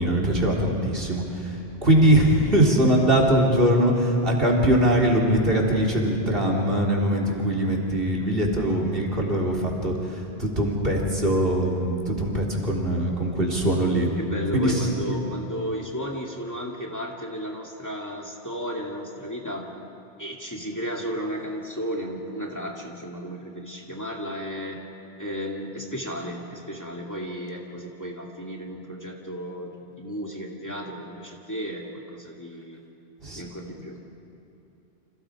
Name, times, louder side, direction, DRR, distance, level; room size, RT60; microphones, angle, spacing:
voice 1, 0.0-1.5 1.8-14.1 14.5-15.2 33.2-33.4, right 1 dB, 65° right, 0 dB, 3.7 m, -22 dB
voice 2, 14.2-19.7 20.2-24.8 25.2-29.7 30.0-32.8 33.3-34.0, equal, 15° left, -1 dB, 2.4 m, -34 dB
30.0 x 26.5 x 4.9 m, 3.0 s
omnidirectional pair, 1.0 m